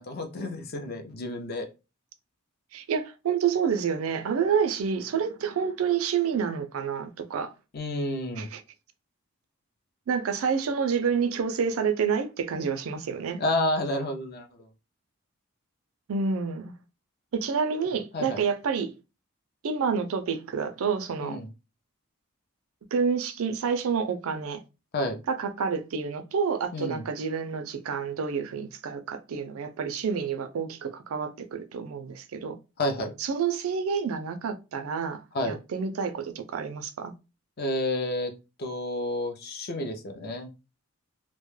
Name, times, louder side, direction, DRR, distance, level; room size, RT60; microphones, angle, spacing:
voice 1, 0.0-1.7 7.7-8.5 13.4-14.7 18.1-18.4 21.2-21.5 24.9-25.2 26.7-27.0 32.8-33.1 35.3-35.6 37.6-38.3 38.6-40.5, left 1 dB, 45° left, 0.5 m, -30 dB
voice 2, 2.7-7.5 8.4-8.6 10.1-13.4 16.1-16.7 17.3-18.9 19.6-21.4 22.9-24.6 25.3-32.6 33.2-37.1, right 6 dB, 75° right, 0.4 m, -28 dB
2.2 x 2.0 x 3.0 m
head